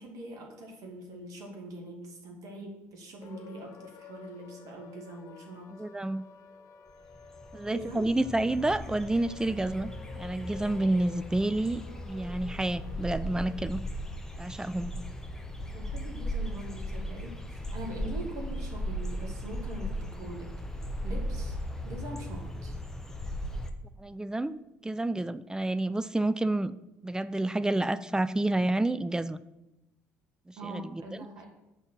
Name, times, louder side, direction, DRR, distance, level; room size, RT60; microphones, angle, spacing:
voice 1, 0.0-5.8 7.7-8.1 15.7-21.6 21.9-22.7 30.6-31.5, right 1 dB, 50° right, 1 dB, 2.3 m, -43 dB
sound 1, 3.2-13.6, left 7 dB, 45° left, 0.8 m, -51 dB
voice 2, 5.7-6.2 7.5-9.9 10.2-13.8 14.4-15.0 24.0-26.7 27.0-29.4 30.5-31.0, right 2 dB, 10° right, 15 dB, 0.4 m, -29 dB
sound 2, 6.9-7.0 7.2-23.7, equal, 5° left, 0.9 m, -37 dB
8.8 x 4.5 x 7.4 m, 0.94 s
figure-of-eight pair, 55°, 7 cm